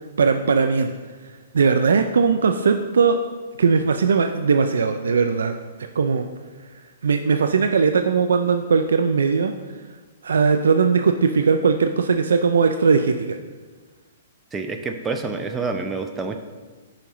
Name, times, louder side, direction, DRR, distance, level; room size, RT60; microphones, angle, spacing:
voice 1, 0.2-1.0 1.5-3.2 3.6-5.5 6.0-6.3 7.0-9.5 10.2-13.4, right 5 dB, 80° right, 7 dB, 0.4 m, -19 dB
voice 2, 14.5-16.4, right 4 dB, 15° right, 6 dB, 0.5 m, -27 dB
8.8 x 5.7 x 3.1 m, 1.4 s
hypercardioid pair, 130°, 0 cm